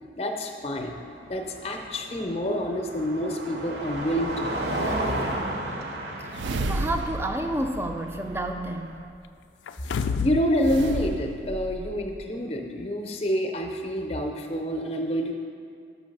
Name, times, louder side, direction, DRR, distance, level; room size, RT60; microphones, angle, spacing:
voice 1, 0.1-0.9 1.3-4.6 10.2-15.3, equal, 35° left, 3 dB, 0.6 m, -27 dB
Car passing by, 0.8-9.0, right 1 dB, 70° right, 0.8 m, -33 dB
voice 2, 6.2-9.0, right 1 dB, 15° right, 5 dB, 0.3 m, -30 dB
sound 1, 6.3-8.7 10.6-12.2, right 2 dB, 85° right, 0.4 m, -33 dB
sound 2, 9.7-10.5 10.9-11.0, left 5 dB, 80° left, 0.3 m, -28 dB
6.2 x 5.8 x 5.3 m, 2.3 s
head